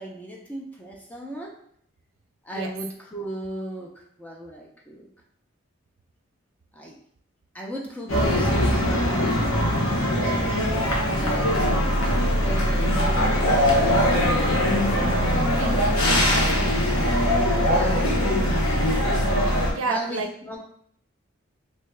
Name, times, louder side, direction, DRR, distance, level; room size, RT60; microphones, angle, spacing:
voice 1, 0.0-1.5 2.4-5.1 6.7-7.0 7.5-9.5 11.0-11.5 12.4-14.2 17.5-18.0 19.6-20.6, right 1 dB, 5° left, -2 dB, 0.5 m, -36 dB
sound 1, 8.1-19.7, equal, 85° left, 1.0 m, -21 dB
voice 2, 15.4-16.8 19.7-20.3, right 3 dB, 80° right, 5 dB, 0.5 m, -32 dB
3.2 x 2.8 x 3.2 m, 0.66 s
head